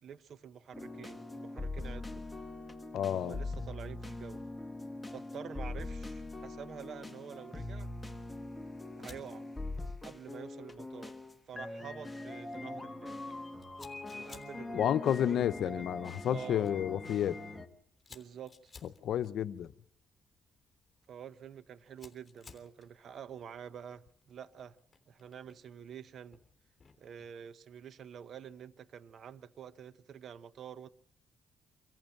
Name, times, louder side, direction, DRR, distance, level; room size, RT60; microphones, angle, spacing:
voice 1, 0.0-2.2 3.1-4.4 5.1-7.9 9.0-9.5 10.0-11.1 11.5-13.2 14.1-14.8 15.1-15.8 16.3-16.7 18.1-18.7 21.1-24.8 25.1-26.4 27.0-30.9, right 8 dB, 60° right, 0.9 m, -48 dB
sound 1, 0.7-17.7, left 2 dB, 10° left, 1.5 m, -42 dB
voice 2, 2.9-3.4 14.7-17.4 19.0-19.7, left 10 dB, 70° left, 0.9 m, -31 dB
Fire, 11.2-27.2, left 5 dB, 30° left, 3.4 m, -61 dB
25.0 x 14.5 x 7.8 m
cardioid pair, 90°, 0 cm